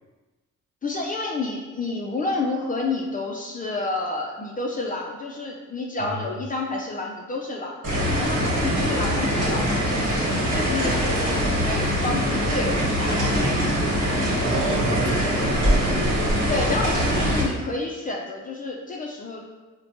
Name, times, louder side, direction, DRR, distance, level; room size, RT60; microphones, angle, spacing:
voice 1, 0.8-7.8 8.2-13.5 16.5-19.4, left 3 dB, 30° left, -1 dB, 0.4 m, -30 dB
voice 2, 6.0-6.4 8.4-8.7 14.4-15.9 16.8-16.9, right 3 dB, 75° right, 2 dB, 0.6 m, -30 dB
sound 1, 7.8-17.4, equal, 55° right, 1.2 m, -23 dB
4.0 x 2.2 x 2.8 m, 1.2 s
cardioid pair, 90°, 30 cm